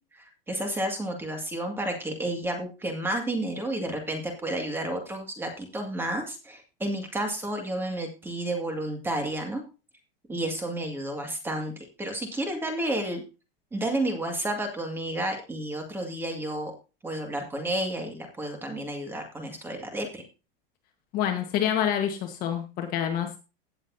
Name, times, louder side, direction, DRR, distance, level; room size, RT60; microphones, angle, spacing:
voice 1, 0.1-9.6 10.3-13.2 13.7-16.7 17.0-20.2, right 1 dB, 5° right, 3 dB, 2.1 m, -31 dB
voice 2, 21.1-23.3, left 9 dB, 30° left, 5 dB, 1.4 m, -27 dB
17.0 x 7.2 x 2.7 m, 0.31 s
supercardioid pair, 170°, 29 cm